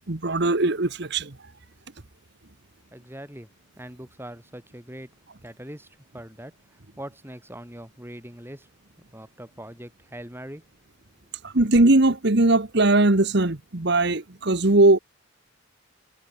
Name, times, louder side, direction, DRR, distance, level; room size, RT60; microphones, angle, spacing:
voice 1, 0.1-1.3 11.4-15.0, right 2 dB, 55° right, 1.4 m, -20 dB
voice 2, 2.9-3.5 3.8-5.1 5.4-8.7 9.1-10.6, right 1 dB, 10° right, 5.4 m, -42 dB
head